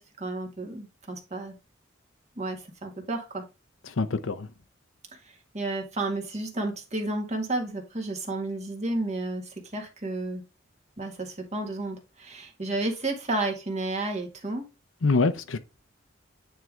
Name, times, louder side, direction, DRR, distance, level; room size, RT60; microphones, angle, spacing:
voice 1, 0.0-1.6 2.4-3.4 5.3-10.4 11.0-14.6, right 2 dB, 35° right, 1.8 m, -32 dB
voice 2, 3.9-4.5 15.0-15.6, left 3 dB, 85° left, 0.7 m, -25 dB
9.1 x 3.8 x 3.4 m
head